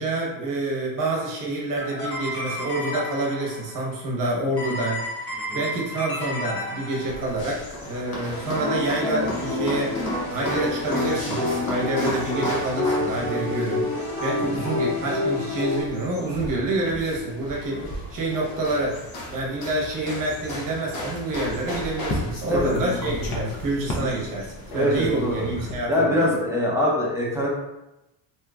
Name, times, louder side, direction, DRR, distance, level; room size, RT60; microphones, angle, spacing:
voice 1, 0.0-13.9 14.2-19.0 19.3-26.4, right 2 dB, 45° right, -2 dB, 1.0 m, -27 dB
sound 1, 1.8-3.7 4.6-7.4 8.3-15.8, left 2 dB, 30° left, 1.1 m, -29 dB
sound 2, 7.0-25.7, left 1 dB, 50° left, 0.9 m, -34 dB
voice 2, 22.5-22.8 24.0-24.1 24.8-25.4 25.9-27.5, left 1 dB, 5° right, -5 dB, 0.7 m, -23 dB
2.9 x 2.4 x 3.4 m, 0.93 s
cardioid pair, 145°, 46 cm